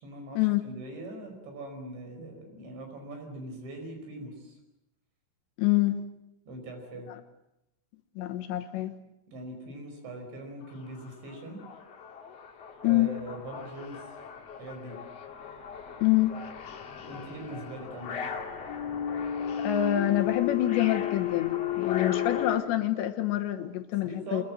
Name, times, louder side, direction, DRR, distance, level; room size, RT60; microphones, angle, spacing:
voice 1, 0.0-4.6 6.5-7.1 9.3-11.6 12.8-14.0 14.6-15.0 17.0-18.2 24.0-24.4, right 1 dB, 65° right, 4 dB, 7.3 m, -41 dB
voice 2, 5.6-6.0 8.2-8.9 12.8-13.1 16.0-16.3 19.6-24.4, left 14 dB, 75° left, 6 dB, 3.2 m, -26 dB
sound 1, 10.6-10.7 11.1-22.6, left 9 dB, 50° left, 2.1 m, -34 dB
24.5 x 21.5 x 7.7 m, 0.88 s
omnidirectional pair, 5.6 m